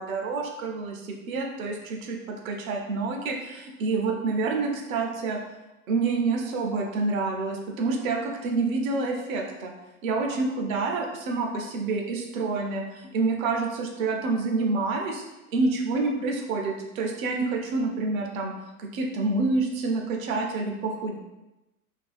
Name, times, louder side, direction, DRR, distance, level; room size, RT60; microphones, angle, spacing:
voice 1, 0.0-5.4 5.9-9.7 10.0-15.2 15.5-18.5 18.8-21.2, right 3 dB, 65° right, 2 dB, 0.6 m, -28 dB
2.4 x 2.2 x 2.4 m, 0.99 s
hypercardioid pair, 100°, 44 cm